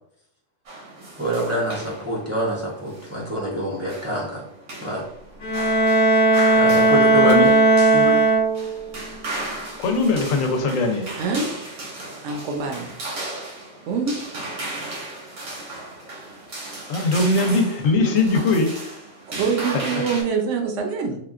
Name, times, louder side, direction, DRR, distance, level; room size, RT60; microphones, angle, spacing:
sound 1, 0.7-20.2, right 2 dB, 90° right, 1.3 m, -36 dB
voice 1, 1.2-4.5 4.8-5.1 6.6-7.5 7.9-8.2, right 1 dB, 20° right, -6 dB, 0.4 m, -26 dB
Bowed string instrument, 5.4-8.9, right 2 dB, 50° left, 0.7 m, -17 dB
voice 2, 9.8-11.1 16.9-18.7, left 3 dB, 85° left, 4 dB, 1.0 m, -20 dB
voice 3, 11.2-11.5 12.2-12.9 13.9-14.2 19.3-21.2, right 5 dB, 70° right, 3 dB, 0.9 m, -25 dB
3.6 x 2.2 x 2.4 m, 0.73 s
omnidirectional pair, 1.3 m